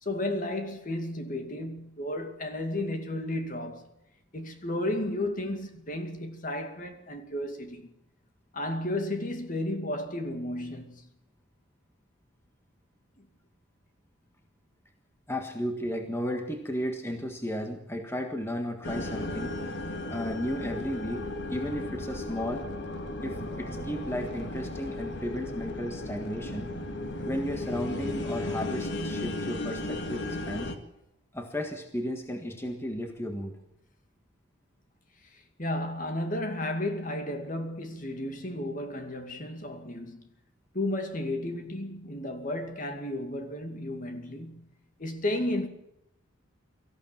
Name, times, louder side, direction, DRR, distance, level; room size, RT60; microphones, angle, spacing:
voice 1, 0.0-3.9 4.3-7.9 8.5-11.1 13.2-13.3 35.2-40.2 40.7-44.7 45.0-45.7, left 1 dB, 40° left, 2.4 m, -33 dB
voice 2, 15.3-19.5 20.1-21.2 21.5-22.7 23.2-26.7 27.3-30.7 31.3-33.6, equal, 10° left, 1.6 m, -34 dB
sound 1, 18.8-30.8, left 2 dB, 60° left, 2.1 m, -35 dB
24.0 x 15.0 x 7.4 m
head